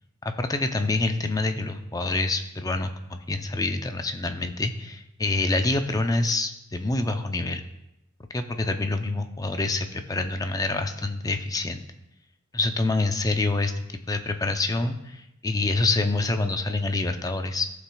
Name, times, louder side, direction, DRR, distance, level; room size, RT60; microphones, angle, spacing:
voice 1, 0.2-7.6 8.3-11.8 12.5-13.7 14.1-17.7, left 2 dB, 15° left, 7 dB, 0.5 m, -26 dB
15.0 x 5.7 x 2.3 m, 0.88 s
head